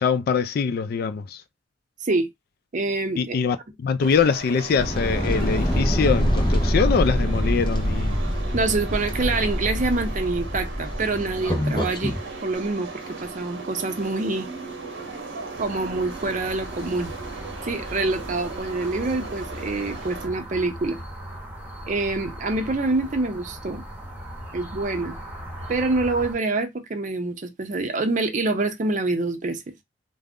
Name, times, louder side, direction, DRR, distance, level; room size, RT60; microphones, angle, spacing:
voice 1, 0.0-1.4 3.2-3.6 3.8-8.2, left 6 dB, 55° left, 0.3 m, -23 dB
voice 2, 2.7-3.4 8.5-12.1 12.4-12.9 13.2-14.5 15.6-17.1 17.7-21.0 21.9-23.8 24.5-25.2 25.7-29.7, right 3 dB, 45° right, 0.5 m, -26 dB
sound 1, 4.0-20.3, right 3 dB, 90° right, 0.8 m, -37 dB
sound 2, 4.7-12.2, equal, 25° left, 0.7 m, -25 dB
sound 3, 15.5-26.3, equal, 10° right, 0.9 m, -38 dB
2.4 x 2.0 x 3.4 m
head